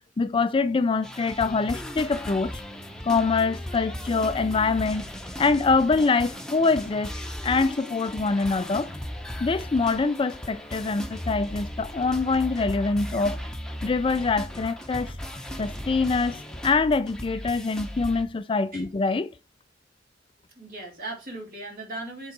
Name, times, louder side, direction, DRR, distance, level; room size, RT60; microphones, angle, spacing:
voice 1, 0.2-2.6 3.0-5.1 5.4-7.1 7.4-8.9 9.4-13.4 13.8-15.2 15.6-19.3, left 4 dB, 30° left, 0.4 m, -24 dB
sound 1, 1.0-18.2, equal, 5° left, 0.9 m, -37 dB
voice 2, 20.5-22.3, right 2 dB, 50° right, 3.0 m, -38 dB
7.7 x 3.9 x 4.6 m
head